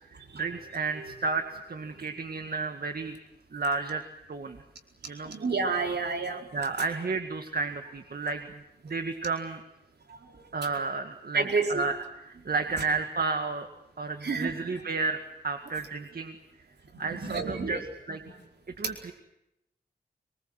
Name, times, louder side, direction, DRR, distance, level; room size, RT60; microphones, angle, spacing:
voice 1, 0.1-3.1 3.5-4.0 4.3-4.6 5.1-5.3 6.5-8.5 8.8-9.6 10.5-13.7 14.0-16.3 17.0-18.2 18.8-19.1, right 4 dB, 65° right, 6 dB, 2.0 m, -32 dB
voice 2, 5.2-6.5 11.3-11.8 14.2-14.5 16.9-17.8, right 4 dB, 80° right, 3 dB, 4.7 m, -29 dB
25.5 x 22.0 x 7.9 m, 0.85 s
wide cardioid pair, 75°, 17 cm